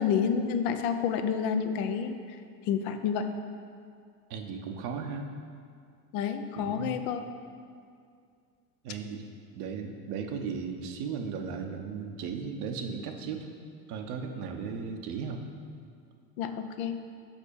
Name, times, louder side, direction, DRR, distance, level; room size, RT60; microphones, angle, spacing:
voice 1, 0.0-2.1 2.7-3.3 6.1-7.2 16.4-17.0, left 7 dB, 60° left, 7 dB, 0.7 m, -29 dB
voice 2, 4.3-5.3 6.6-7.0 8.8-9.2 9.5-13.5 13.9-15.4, right 6 dB, 60° right, 4 dB, 1.0 m, -36 dB
6.1 x 5.2 x 6.9 m, 2.2 s
hypercardioid pair, 70°, 50 cm